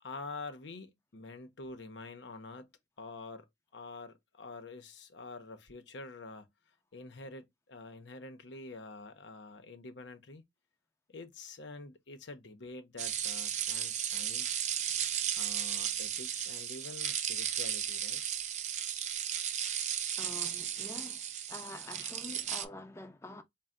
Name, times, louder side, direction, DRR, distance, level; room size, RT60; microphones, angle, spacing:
voice 1, 0.0-2.7 3.0-3.5 3.7-6.5 6.9-10.4 11.1-14.7 15.4-18.2, left 3 dB, 85° left, 0.7 m, -47 dB
sound 1, 13.0-22.6, right 9 dB, 40° right, 0.5 m, -35 dB
voice 2, 20.2-21.2 21.5-23.4, left 2 dB, 15° left, 0.5 m, -46 dB
4.3 x 2.1 x 3.6 m
head